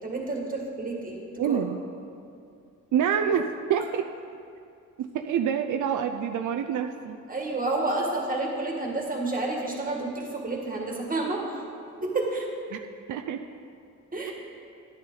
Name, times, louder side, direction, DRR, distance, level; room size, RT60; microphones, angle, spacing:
voice 1, 0.0-1.6 7.3-11.6 12.0-12.5 14.1-14.3, right 2 dB, 25° right, -1 dB, 1.9 m, -30 dB
voice 2, 1.4-1.8 2.9-4.0 5.0-7.2 12.7-12.8 13.1-13.4, right 8 dB, 75° right, 6 dB, 0.5 m, -27 dB
10.5 x 9.5 x 4.0 m, 2.4 s
cardioid pair, 105°, 31 cm